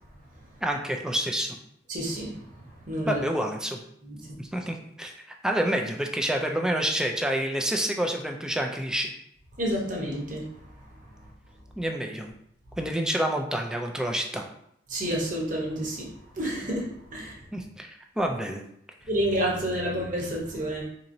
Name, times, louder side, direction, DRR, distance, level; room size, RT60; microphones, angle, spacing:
voice 1, 0.6-1.5 3.0-3.8 4.4-9.1 11.8-12.3 12.8-14.4 17.5-18.6, right 1 dB, 5° right, 2 dB, 0.3 m, -28 dB
voice 2, 1.9-2.3 2.8-3.2 4.0-4.2 9.6-10.4 14.9-16.1 16.3-17.4 19.1-20.8, equal, 45° right, -3 dB, 1.0 m, -29 dB
4.1 x 2.9 x 2.6 m, 0.73 s
head